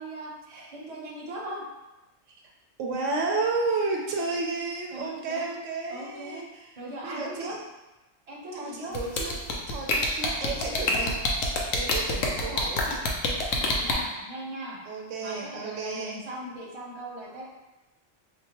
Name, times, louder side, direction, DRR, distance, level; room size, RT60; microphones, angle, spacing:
voice 1, 0.0-0.3 0.7-1.6 4.9-5.6 5.9-6.5 6.8-7.6 8.3-9.0 13.5-14.8 15.2-17.4, right 1 dB, 35° right, -4 dB, 0.6 m, -39 dB
voice 2, 2.8-6.7 7.0-7.6 8.5-9.3 9.7-11.1 11.7-13.0 14.9-16.2, right 3 dB, 75° right, 0 dB, 0.9 m, -32 dB
sound 1, 8.9-13.9, left 2 dB, 85° left, 1.0 m, -26 dB
4.5 x 2.1 x 2.8 m, 1.0 s
omnidirectional pair, 1.3 m